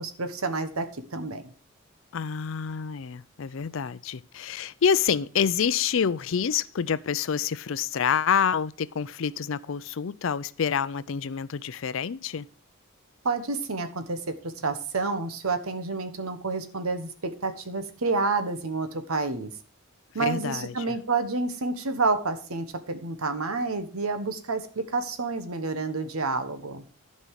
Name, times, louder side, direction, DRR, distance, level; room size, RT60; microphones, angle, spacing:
voice 1, 0.0-1.5 13.2-19.5 20.1-26.8, right 3 dB, 80° right, 1.2 m, -29 dB
voice 2, 2.1-12.5 20.2-20.9, left 7 dB, 60° left, 0.4 m, -27 dB
11.0 x 5.4 x 6.4 m
head